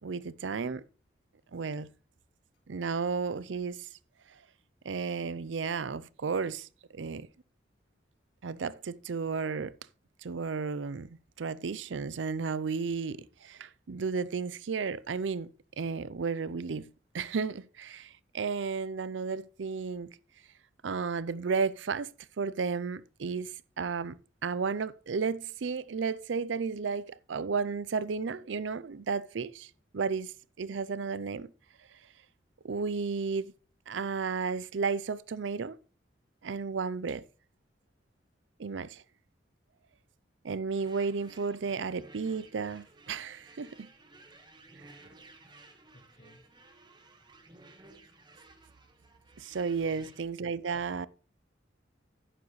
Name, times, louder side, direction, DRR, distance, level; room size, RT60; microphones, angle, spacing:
voice 1, 0.0-0.8 1.5-1.9 2.7-3.8 4.8-7.3 8.4-9.7 10.2-15.5 15.8-16.9 17.1-18.1 18.3-20.1 20.8-22.1 22.4-23.5 23.8-24.2 24.4-29.7 29.9-30.3 30.6-31.5 32.6-33.5 33.9-35.8 36.4-37.2 38.6-39.0 40.4-43.8 49.4-51.1, right 5 dB, 90° right, 0.5 m, -33 dB
sound 1, 40.7-50.2, right 2 dB, 25° right, 1.5 m, -56 dB
voice 2, 45.5-46.4 49.4-49.5 49.8-50.1 50.6-50.8, left 2 dB, 65° left, 4.4 m, -55 dB
11.0 x 9.6 x 3.2 m
head